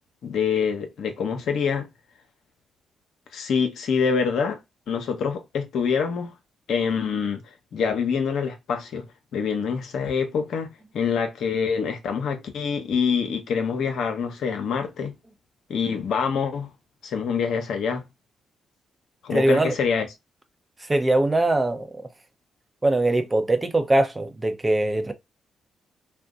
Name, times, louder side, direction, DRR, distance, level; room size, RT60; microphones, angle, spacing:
voice 1, 0.2-1.9 3.3-4.6 4.9-6.3 6.7-7.4 7.7-9.0 9.3-15.1 15.7-16.7 17.0-18.0 19.2-20.1, left 6 dB, 70° left, 0.7 m, -25 dB
voice 2, 19.3-19.7 20.9-21.9 22.8-25.1, right 1 dB, 20° right, 0.7 m, -21 dB
2.6 x 2.2 x 3.6 m
supercardioid pair, 55°, 0 cm